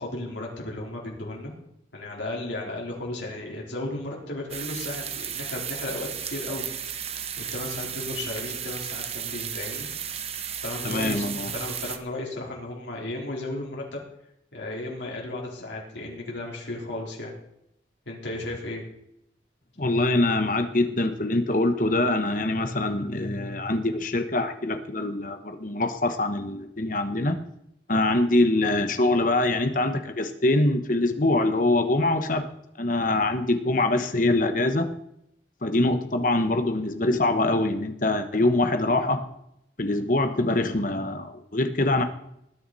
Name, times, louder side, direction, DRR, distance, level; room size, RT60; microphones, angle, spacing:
voice 1, 0.0-1.5 1.9-6.6 6.9-7.1 7.5-9.9 10.6-14.0 14.5-17.3 18.1-18.8, left 2 dB, 75° left, -2 dB, 4.1 m, -34 dB
sound 1, 4.5-12.0, right 8 dB, 35° right, 0.9 m, -34 dB
voice 2, 10.8-11.5 19.8-27.4 27.9-32.5 32.8-34.9 35.6-39.2 39.8-42.0, left 2 dB, 45° left, 8 dB, 1.2 m, -24 dB
19.5 x 9.4 x 4.2 m, 0.78 s
head